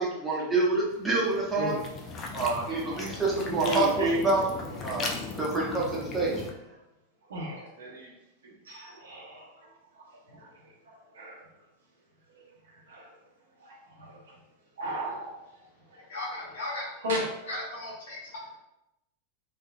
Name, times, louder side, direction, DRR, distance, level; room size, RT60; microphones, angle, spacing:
voice 1, 0.0-1.8 2.3-4.4 4.8-6.3, right 3 dB, 10° right, 1.0 m, -27 dB
sound 1, 1.1-6.5, left 3 dB, 30° left, 0.5 m, -37 dB
voice 2, 2.5-4.2 4.7-5.3 7.3-8.1 8.4-9.7 10.0-10.5 10.8-11.5 12.9-13.1 13.6-14.3 14.8-16.0 17.0-17.6, right 1 dB, 65° right, 0.8 m, -35 dB
voice 3, 16.1-16.8 17.5-18.3, left 2 dB, 60° left, 1.3 m, -36 dB
3.3 x 2.8 x 2.3 m
figure-of-eight pair, 90°, 0 cm